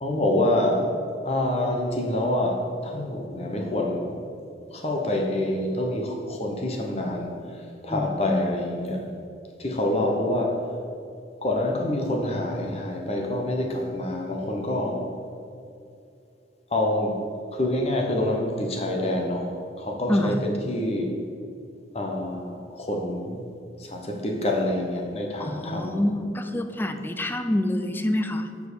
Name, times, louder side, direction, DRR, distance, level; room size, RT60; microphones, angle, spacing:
voice 1, 0.0-0.8 1.2-4.2 4.7-7.3 7.8-9.0 9.6-10.5 11.4-15.0 16.7-17.2 17.5-19.5 19.8-21.1 21.9-23.4 23.9-26.0, left 1 dB, 35° left, 1 dB, 0.9 m, -26 dB
voice 2, 7.9-8.4 20.1-20.5 25.4-28.5, left 1 dB, 10° left, 7 dB, 0.4 m, -26 dB
6.5 x 4.7 x 6.8 m, 2.5 s
head